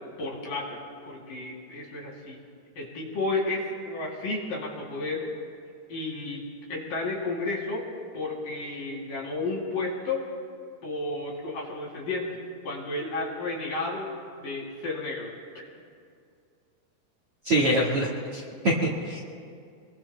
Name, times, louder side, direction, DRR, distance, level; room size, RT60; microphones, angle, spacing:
voice 1, 0.2-0.8 1.1-2.4 2.8-5.2 5.9-7.9 8.1-10.3 10.8-12.4 12.6-14.1 14.4-15.6, left 2 dB, 55° left, -3 dB, 4.3 m, -32 dB
voice 2, 17.4-19.2, right 1 dB, 55° right, -3 dB, 1.7 m, -25 dB
29.0 x 22.0 x 2.2 m, 2.3 s
omnidirectional pair, 4.9 m